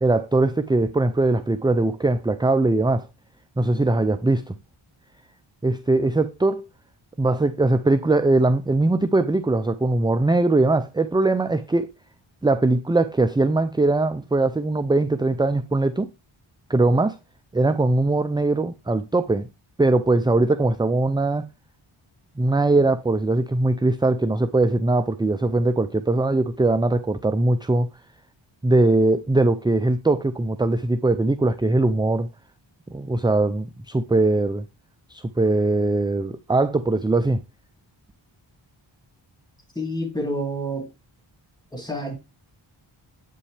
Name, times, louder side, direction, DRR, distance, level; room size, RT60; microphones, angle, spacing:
voice 1, 0.0-3.1 3.6-4.6 5.6-6.6 7.2-11.9 12.4-16.1 16.7-17.2 17.5-19.5 19.8-21.5 22.4-27.9 28.6-32.3 32.9-34.7 35.1-37.4, right 2 dB, 10° right, 0.3 m, -21 dB
voice 2, 39.8-40.9 41.7-42.2, equal, 10° left, 2.3 m, -28 dB
8.4 x 5.4 x 3.3 m
wide cardioid pair, 90°, 49 cm